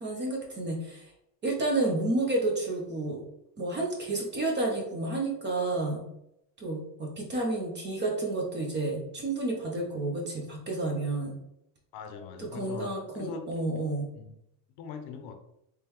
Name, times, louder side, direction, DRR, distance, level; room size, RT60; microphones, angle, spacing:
voice 1, 0.0-1.0 1.4-3.2 3.6-6.0 6.6-11.4 12.4-14.1, right 2 dB, 25° right, 0 dB, 0.5 m, -30 dB
voice 2, 11.9-12.9 13.1-13.7 14.1-14.4 14.8-15.4, left 5 dB, 60° left, 7 dB, 0.6 m, -41 dB
3.7 x 3.2 x 3.0 m, 0.81 s
cardioid pair, 160°, 48 cm